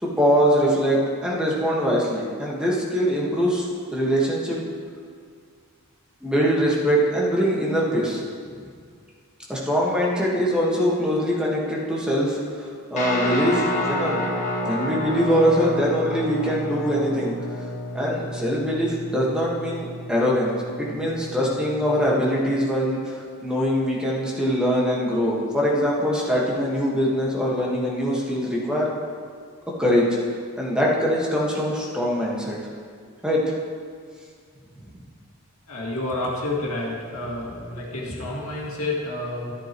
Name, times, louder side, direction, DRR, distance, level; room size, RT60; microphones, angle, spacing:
voice 1, 0.0-3.7 3.9-4.7 6.2-8.2 9.5-14.2 14.6-17.3 17.9-20.5 20.8-28.9 29.8-30.1 30.6-32.6 33.2-33.4, equal, 5° right, -5 dB, 1.6 m, -23 dB
Guitar, 13.0-22.3, left 1 dB, 35° left, 1.5 m, -30 dB
voice 2, 35.7-39.5, left 2 dB, 70° left, -4 dB, 2.2 m, -29 dB
13.5 x 8.7 x 3.1 m, 2.1 s
head